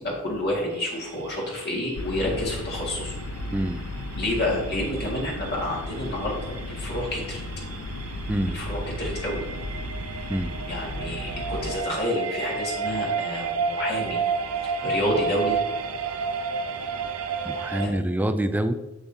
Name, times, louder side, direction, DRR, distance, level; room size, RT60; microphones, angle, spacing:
voice 1, 0.0-3.2 4.2-7.4 8.5-9.4 10.7-14.2 14.6-15.6 17.8-17.9, left 1 dB, 50° left, -3 dB, 1.8 m, -29 dB
sound 1, 0.7-17.9, right 5 dB, 90° right, 0.6 m, -32 dB
sound 2, 1.9-11.8, left 1 dB, 75° left, 0.6 m, -35 dB
voice 2, 3.5-3.8 8.3-8.6 10.3-10.6 17.4-18.7, right 1 dB, 10° right, 9 dB, 0.3 m, -26 dB
7.2 x 6.9 x 2.7 m, 0.99 s
head